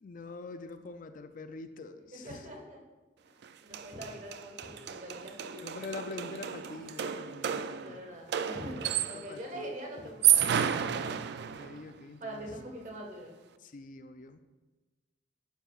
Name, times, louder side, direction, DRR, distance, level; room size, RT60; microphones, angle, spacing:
voice 1, 0.0-2.5 5.6-8.0 9.1-9.7 11.6-12.5 13.6-14.4, left 3 dB, 45° left, 9 dB, 0.4 m, -44 dB
voice 2, 2.1-2.8 3.2-3.4 3.6-5.8 7.8-11.1 12.2-13.3, equal, 45° right, 0 dB, 1.5 m, -43 dB
sound 1, 3.4-3.5 3.7-9.4 10.0-11.8, right 9 dB, 60° right, 0.4 m, -31 dB
11.0 x 8.0 x 2.4 m, 1.2 s
head